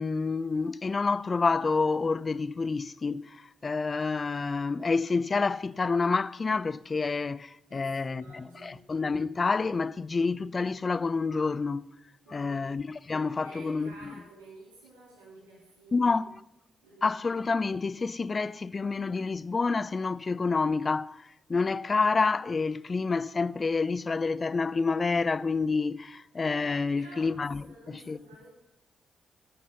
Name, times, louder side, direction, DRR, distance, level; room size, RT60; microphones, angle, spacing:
voice 1, 0.0-11.9 12.3-14.1 15.9-16.3 17.0-21.2 21.5-27.6 28.1-28.2, left 4 dB, 40° left, 0.4 m, -28 dB
voice 2, 7.7-8.9 12.2-12.8 13.4-16.4 16.8-17.1 26.8-28.5, right 2 dB, 90° right, 3.8 m, -51 dB
12.5 x 5.7 x 6.7 m
hypercardioid pair, 40°, 0 cm